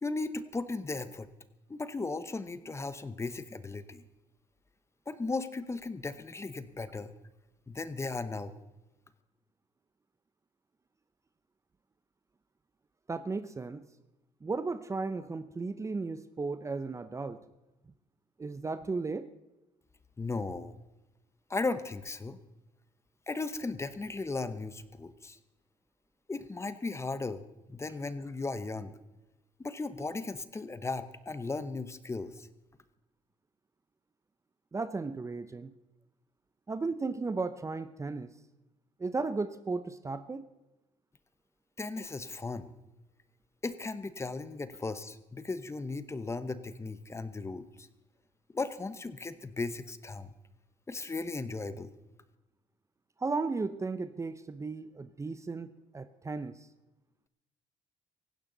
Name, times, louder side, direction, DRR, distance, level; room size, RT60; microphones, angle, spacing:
voice 1, 0.0-1.3 1.7-4.0 5.1-7.1 7.7-8.5 20.2-20.7 21.5-22.4 23.3-25.4 26.3-27.4 27.7-28.9 29.6-32.5 41.8-42.7 43.6-47.9 48.5-50.3 50.9-51.9, left 3 dB, 20° left, 13 dB, 1.0 m, -36 dB
voice 2, 13.1-13.9 14.4-17.4 18.4-19.3 34.7-35.7 36.7-38.3 39.0-40.4 53.2-56.7, right 3 dB, 20° right, 13 dB, 0.7 m, -35 dB
18.0 x 15.5 x 4.0 m, 1.0 s
cardioid pair, 100°, 13 cm